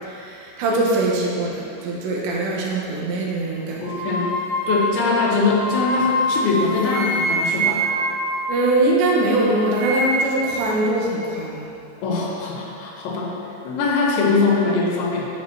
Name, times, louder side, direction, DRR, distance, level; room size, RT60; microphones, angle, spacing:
voice 1, 0.3-3.9 8.5-11.7, right 2 dB, 75° right, -3 dB, 3.4 m, -22 dB
voice 2, 3.8-4.3 4.7-7.8 12.0-13.3 13.7-15.3, left 3 dB, 80° left, -3 dB, 3.5 m, -22 dB
sound 1, 3.8-9.1 9.4-10.5, right 1 dB, 60° right, 3.1 m, -25 dB
11.0 x 10.5 x 3.0 m, 2.6 s
omnidirectional pair, 5.3 m